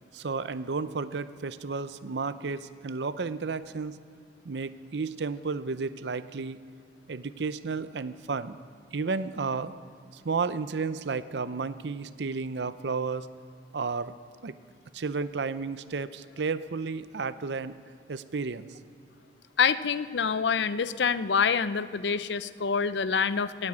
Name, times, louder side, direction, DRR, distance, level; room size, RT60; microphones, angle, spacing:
voice 1, 0.1-4.0 4.4-6.6 7.1-8.6 8.9-9.7 10.1-13.3 13.7-14.1 14.4-14.5 14.9-17.8 18.1-18.7, right 4 dB, 75° right, 14 dB, 0.6 m, -32 dB
voice 2, 19.6-23.7, left 6 dB, 75° left, 15 dB, 0.5 m, -26 dB
16.0 x 9.8 x 9.0 m, 2.4 s
head